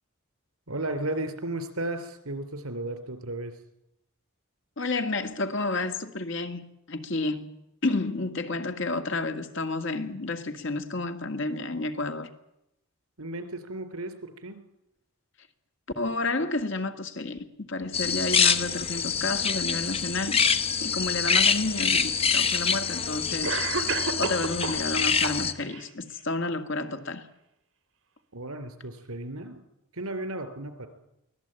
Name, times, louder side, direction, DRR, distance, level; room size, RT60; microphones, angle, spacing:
voice 1, 0.7-3.5 13.2-14.6 28.3-29.6 29.9-30.9, right 2 dB, 85° right, 3.4 m, -34 dB
voice 2, 4.8-7.6 7.8-12.3 16.0-20.4 20.8-27.2, left 2 dB, 60° left, 1.9 m, -31 dB
sound 1, 17.9-25.5, left 6 dB, 25° left, 1.1 m, -25 dB
Cough, 21.7-21.8 22.8-22.9 23.4-24.9 25.2-25.9, right 4 dB, 65° right, 2.1 m, -31 dB
23.5 x 17.5 x 8.9 m
head